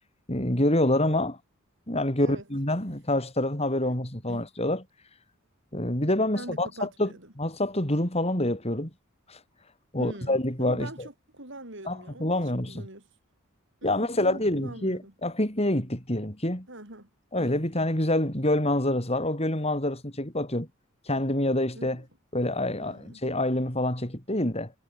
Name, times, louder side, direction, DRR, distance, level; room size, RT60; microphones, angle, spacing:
voice 1, 0.3-1.4 1.9-4.8 5.7-7.1 7.4-8.9 9.3-9.4 9.9-11.1 11.8-12.8 13.8-16.7 17.3-20.7 21.1-22.0 22.3-24.7, left 1 dB, 30° left, 5.1 m, -27 dB
voice 2, 6.3-7.3 10.0-13.0 13.8-15.1 16.7-17.1 17.4-17.6 21.7-22.0 22.8-23.2, right 1 dB, 60° right, 7.8 m, -43 dB
head